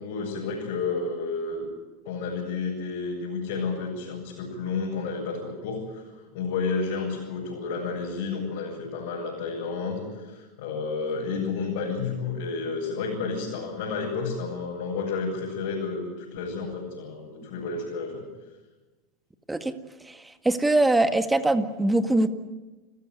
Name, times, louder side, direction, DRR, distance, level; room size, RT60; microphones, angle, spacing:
voice 1, 0.0-1.7 2.0-6.0 6.3-18.2, left 4 dB, 65° left, -4 dB, 7.8 m, -31 dB
voice 2, 20.4-22.3, right 2 dB, 10° right, 9 dB, 1.9 m, -22 dB
29.5 x 15.0 x 9.4 m, 1.2 s
hypercardioid pair, 95°, 0 cm